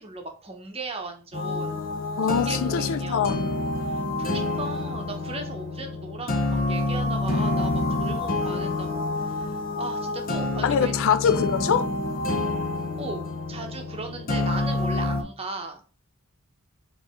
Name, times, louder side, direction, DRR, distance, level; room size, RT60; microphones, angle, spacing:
voice 1, 0.0-1.9 2.2-3.4 3.8-11.0 13.0-15.8, right 3 dB, 25° right, 0.9 m, -37 dB
sound 1, 1.3-15.2, left 2 dB, 40° left, 0.8 m, -28 dB
voice 2, 2.2-3.5 10.6-11.9, left 7 dB, 65° left, 0.4 m, -23 dB
4.8 x 3.1 x 3.6 m
head